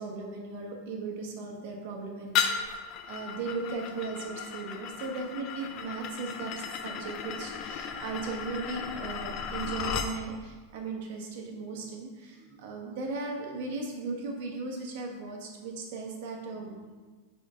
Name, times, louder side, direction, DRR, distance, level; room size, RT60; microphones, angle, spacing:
voice 1, 0.0-2.6 3.0-6.5 6.8-16.9, right 3 dB, 60° right, 1 dB, 1.3 m, -37 dB
sound 1, 2.3-10.1, left 7 dB, 35° left, 0.5 m, -35 dB
4.5 x 4.4 x 5.0 m, 1.4 s
supercardioid pair, 155°, 0 cm